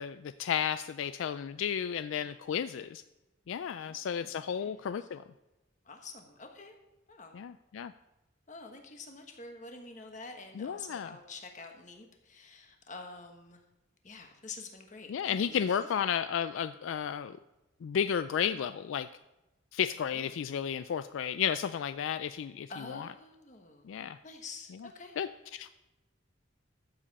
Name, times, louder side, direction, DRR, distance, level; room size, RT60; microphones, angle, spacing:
voice 1, 0.0-3.0 3.5-5.2 7.3-7.9 10.6-11.2 15.1-17.4 17.8-19.1 19.7-23.1 23.8-24.2 25.2-25.7, left 8 dB, 75° left, 12 dB, 0.3 m, -33 dB
voice 2, 3.8-5.1 5.8-6.7 7.1-7.4 8.5-13.6 14.0-15.8 20.1-20.4 22.7-23.9 24.2-25.2, left 3 dB, 35° left, 4 dB, 1.3 m, -48 dB
13.5 x 7.6 x 4.2 m, 1.0 s
head